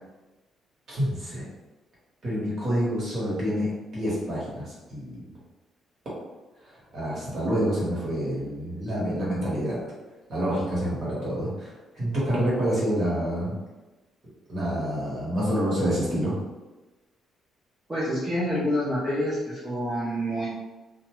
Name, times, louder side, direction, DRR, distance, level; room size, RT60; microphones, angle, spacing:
voice 1, 0.9-1.5 2.2-5.2 6.6-9.8 10.3-13.5 14.5-16.4, equal, 45° right, -7 dB, 1.2 m, -27 dB
voice 2, 17.9-20.5, equal, 15° right, -10 dB, 0.7 m, -27 dB
2.6 x 2.2 x 3.0 m, 1.2 s
cardioid pair, 155°, 0 cm